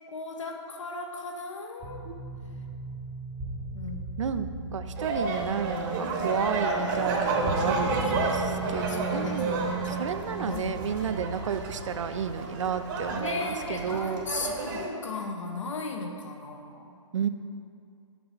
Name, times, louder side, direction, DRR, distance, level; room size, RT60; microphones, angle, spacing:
voice 1, 0.1-2.0 3.7-4.0 7.9-10.9 11.8-11.9 13.1-17.0, left 3 dB, 75° left, 2 dB, 1.1 m, -37 dB
sound 1, 1.8-13.1, right 4 dB, 10° right, 0.9 m, -38 dB
voice 2, 4.2-9.7 10.0-14.3 17.1-17.3, right 7 dB, 75° right, 10 dB, 0.5 m, -32 dB
sound 2, 5.0-14.9, right 3 dB, 40° right, 1.0 m, -31 dB
6.0 x 5.1 x 5.8 m, 2.5 s
hypercardioid pair, 140°, 16 cm